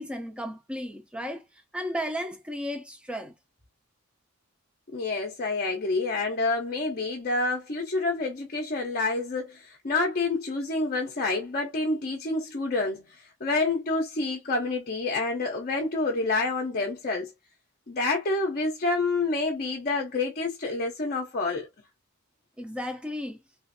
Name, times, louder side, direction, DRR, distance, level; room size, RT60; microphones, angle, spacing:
voice 1, 0.0-1.4 1.7-3.3 22.6-23.4, equal, 5° right, 0.5 m, -34 dB
voice 2, 4.9-17.3 17.9-21.7, left 3 dB, 40° left, 0.6 m, -28 dB
3.3 x 2.4 x 2.6 m
head